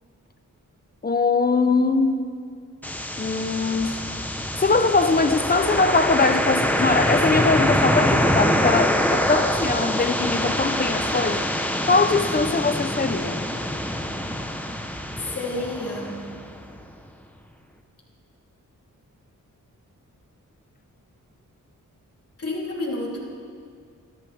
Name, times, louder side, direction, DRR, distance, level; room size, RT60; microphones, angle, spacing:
voice 1, 1.0-2.3 3.2-4.0 4.6-11.5 11.8-13.4, left 3 dB, 30° left, 0.8 m, -22 dB
sound 1, 2.8-16.7, equal, 5° left, 1.1 m, -24 dB
voice 2, 15.3-16.2 22.4-23.2, left 2 dB, 45° left, 3.7 m, -29 dB
27.0 x 12.5 x 3.6 m
wide cardioid pair, 105°, 32 cm